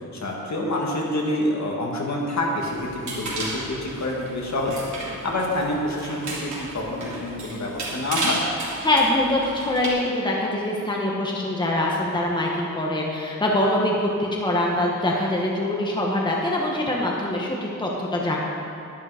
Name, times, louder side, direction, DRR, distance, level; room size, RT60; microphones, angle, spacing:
voice 1, 0.1-4.7 5.1-8.4, left 1 dB, 55° left, -2 dB, 2.0 m, -27 dB
sound 1, 2.6-9.9, right 2 dB, 60° right, 3.2 m, -33 dB
voice 2, 8.8-18.4, left 1 dB, 15° left, -2 dB, 1.2 m, -24 dB
11.0 x 11.0 x 5.0 m, 2.7 s
wide cardioid pair, 150°, 32 cm